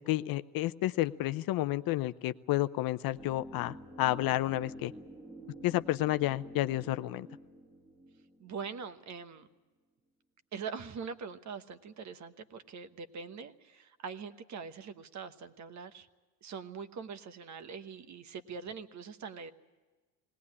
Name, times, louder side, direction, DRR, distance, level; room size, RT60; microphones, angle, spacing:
voice 1, 0.1-4.9 5.6-7.3, left 16 dB, 55° left, 13 dB, 0.7 m, -31 dB
sound 1, 3.1-9.1 9.4-9.5, right 1 dB, ahead, 1.7 m, -49 dB
voice 2, 8.4-9.5 10.5-16.1 16.4-19.5, right 6 dB, 40° right, 11 dB, 1.2 m, -43 dB
20.0 x 18.0 x 9.7 m, 1.3 s
supercardioid pair, 110°, 43 cm